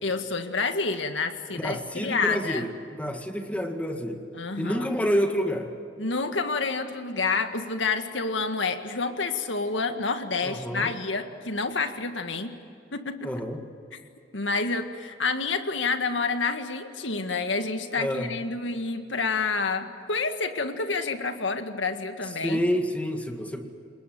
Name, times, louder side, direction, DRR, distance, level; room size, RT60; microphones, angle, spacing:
voice 1, 0.0-2.7 4.3-4.9 6.0-12.5 12.9-13.4 14.3-22.6, left 4 dB, 80° left, 7 dB, 1.9 m, -28 dB
voice 2, 1.5-4.2 4.6-5.7 10.4-10.9 13.2-13.6 18.0-18.3 22.4-23.6, equal, 10° left, 4 dB, 1.9 m, -28 dB
28.5 x 20.5 x 7.9 m, 2.4 s
head